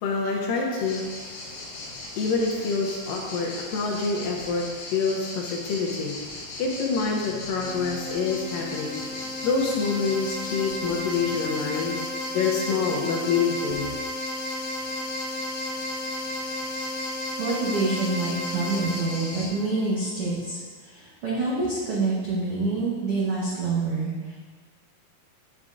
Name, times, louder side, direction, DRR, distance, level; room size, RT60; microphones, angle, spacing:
voice 1, 0.0-14.0, left 4 dB, 75° left, 0 dB, 2.1 m, -27 dB
sound 1, 0.8-19.5, left 2 dB, 55° left, 2.8 m, -38 dB
sound 2, 7.6-20.3, left 1 dB, 5° right, 0.4 m, -34 dB
voice 2, 17.4-24.4, right 3 dB, 85° right, -7 dB, 1.2 m, -27 dB
8.9 x 7.1 x 2.5 m, 1.4 s
omnidirectional pair, 4.5 m